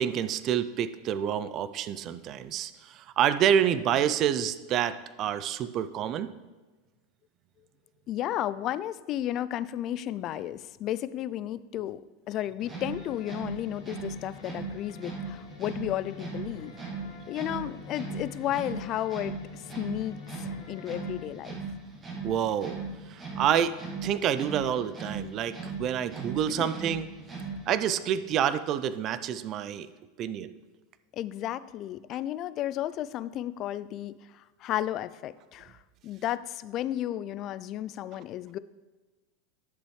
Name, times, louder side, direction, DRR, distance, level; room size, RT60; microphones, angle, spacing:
voice 1, 0.0-6.3 22.2-22.8 23.1-23.7 24.0-27.1 27.7-29.9 30.2-30.5, right 9 dB, 45° right, 14 dB, 0.4 m, -28 dB
voice 2, 8.1-16.7 17.3-21.6 26.5-26.7 31.1-35.8 36.0-38.6, left 12 dB, 45° left, 17 dB, 0.3 m, -33 dB
sound 1, 12.6-21.3, left 5 dB, 70° left, 1.5 m, -48 dB
sound 2, 12.6-27.8, right 4 dB, 25° right, 2.2 m, -39 dB
11.0 x 6.8 x 3.2 m, 1.2 s
hypercardioid pair, 105°, 0 cm